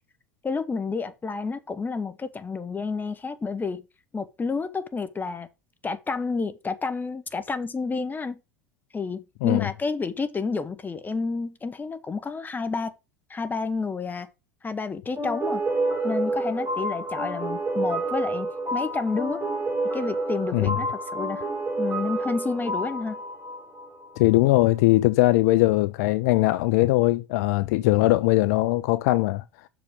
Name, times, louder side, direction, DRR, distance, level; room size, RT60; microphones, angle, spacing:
voice 1, 0.4-3.8 4.1-5.5 5.8-8.4 8.9-12.9 13.3-14.3 14.6-15.6 16.0-19.4 19.9-21.5 21.8-23.2, left 4 dB, 20° left, 1.2 m, -30 dB
sound 1, 15.2-24.4, right 2 dB, 20° right, 4.6 m, -29 dB
voice 2, 24.2-29.4, left 18 dB, 60° left, 0.4 m, -20 dB
6.4 x 5.2 x 5.2 m
figure-of-eight pair, 75°, 10 cm